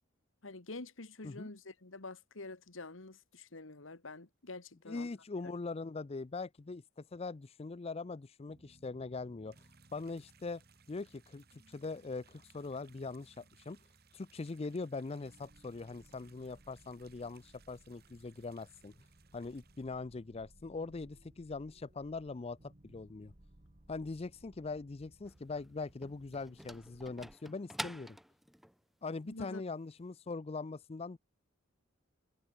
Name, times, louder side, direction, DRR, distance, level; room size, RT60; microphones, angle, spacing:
voice 1, 0.4-5.1 29.3-29.6, left 2 dB, 80° left, 2.0 m, -47 dB
voice 2, 4.9-9.6 9.9-10.6 10.9-13.8 14.1-18.9 19.3-23.3 23.9-28.2 29.0-31.2, left 3 dB, 30° left, 0.5 m, -42 dB
sound 1, 8.5-27.4, right 1 dB, 40° right, 2.0 m, -63 dB
sound 2, 9.5-19.9, right 9 dB, 55° right, 6.3 m, -68 dB
sound 3, 25.3-28.8, equal, ahead, 2.2 m, -47 dB
head